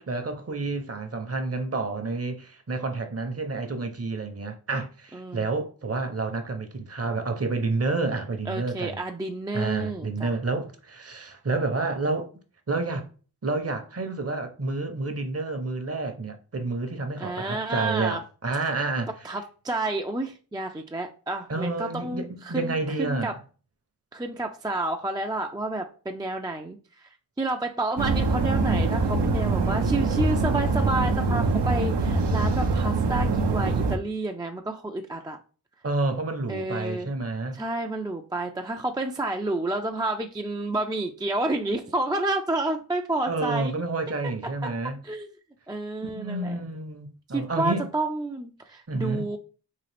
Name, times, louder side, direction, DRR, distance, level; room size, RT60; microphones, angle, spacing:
voice 1, 0.0-9.0 9.5-12.3 12.7-13.1 13.4-19.1 21.5-23.3 35.8-37.6 43.3-45.0 46.0-47.8 48.9-49.3, right 3 dB, 35° right, 0.7 m, -29 dB
voice 2, 5.1-5.5 8.5-10.3 17.2-18.2 19.2-23.4 24.1-27.1 27.4-35.4 36.5-37.1 37.5-43.7 44.6-44.7 45.0-45.3 45.7-46.6 47.3-49.4, right 2 dB, 10° right, 0.4 m, -30 dB
sound 1, 28.0-34.0, right 3 dB, 80° right, 0.7 m, -24 dB
3.8 x 2.4 x 3.3 m
cardioid pair, 50°, 40 cm